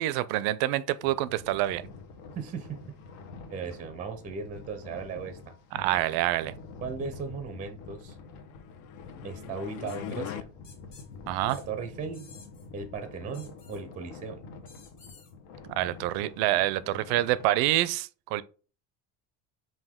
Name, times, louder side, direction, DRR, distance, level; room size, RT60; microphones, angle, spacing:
voice 1, 0.0-1.8 5.7-6.5 11.3-11.6 15.7-18.4, right 15 dB, 75° right, 0.5 m, -27 dB
sound 1, 1.0-17.4, left 4 dB, 80° left, 1.1 m, -47 dB
voice 2, 2.4-3.0 3.5-5.5 6.8-8.2 9.2-10.4 11.5-12.3 12.7-14.4, right 5 dB, 20° right, 0.4 m, -37 dB
sound 2, 8.5-10.4, left 10 dB, 55° left, 0.5 m, -40 dB
sound 3, 9.9-10.0 10.6-11.1 11.5-11.6 12.1-12.7 13.3-13.8 14.7-15.3, left 5 dB, 30° left, 1.3 m, -53 dB
5.4 x 2.6 x 3.6 m
cardioid pair, 165°, 38 cm